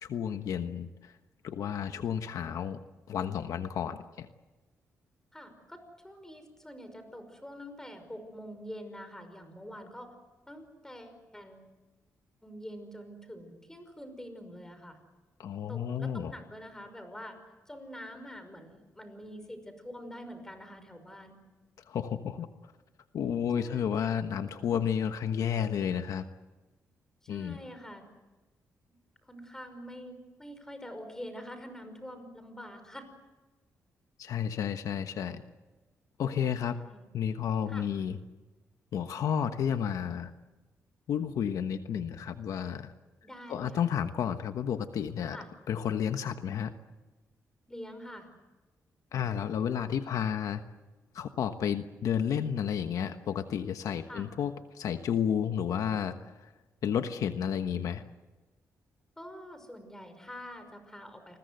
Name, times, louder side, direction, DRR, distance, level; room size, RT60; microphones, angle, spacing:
voice 1, 0.0-1.1 1.4-2.8 3.1-4.3 15.4-16.3 21.9-22.5 23.1-26.3 27.3-27.6 34.2-35.4 36.2-36.8 37.1-38.2 38.9-40.3 41.1-42.9 43.5-45.4 45.7-46.7 49.1-50.6 51.1-56.1 56.8-58.0, left 8 dB, 75° left, 8 dB, 1.2 m, -31 dB
voice 2, 5.3-10.1 10.5-11.7 12.4-15.0 15.7-17.4 17.7-21.4 23.5-24.1 27.2-28.0 29.2-33.0 36.5-37.1 37.7-37.9 43.2-43.9 45.3-45.5 47.7-48.3 54.1-54.3 59.2-61.4, equal, 10° left, 8 dB, 5.6 m, -46 dB
29.0 x 21.0 x 7.9 m, 1.2 s
cardioid pair, 105°, 6 cm